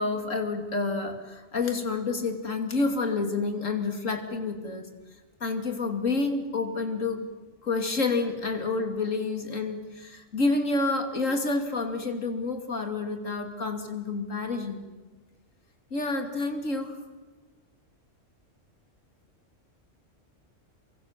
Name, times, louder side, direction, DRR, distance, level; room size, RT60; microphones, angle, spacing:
voice 1, 0.0-4.9 5.4-7.2 7.6-14.9 15.9-17.0, left 3 dB, 90° left, 5 dB, 3.1 m, -29 dB
29.0 x 24.0 x 7.4 m, 1.2 s
omnidirectional pair, 1.3 m